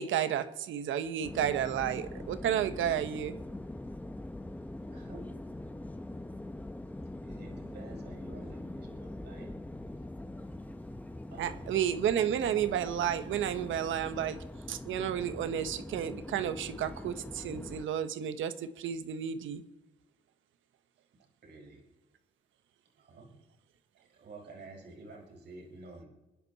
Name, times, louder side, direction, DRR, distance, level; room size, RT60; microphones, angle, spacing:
voice 1, 0.0-3.4 11.4-14.4 14.7-19.6, right 9 dB, 75° right, 11 dB, 1.3 m, -32 dB
sound 1, 1.2-17.9, left 1 dB, 10° left, 1.1 m, -43 dB
voice 2, 4.9-5.3 7.2-9.5 11.3-11.8 21.4-21.8 23.0-23.3 24.1-26.1, right 2 dB, 55° right, 0 dB, 5.8 m, -49 dB
28.0 x 10.5 x 4.2 m, 1.0 s
cardioid pair, 90°, 20 cm